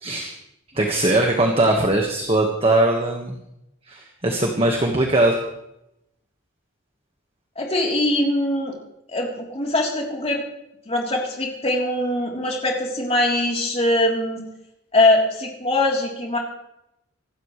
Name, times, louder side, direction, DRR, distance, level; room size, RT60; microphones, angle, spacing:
voice 1, 0.0-0.3 0.7-3.3 3.9-5.4, right 1 dB, 30° right, 1 dB, 1.6 m, -20 dB
voice 2, 7.6-8.8 9.1-10.4 10.9-14.4 14.9-16.4, left 1 dB, 30° left, -1 dB, 3.6 m, -22 dB
26.0 x 12.5 x 3.3 m, 0.82 s
head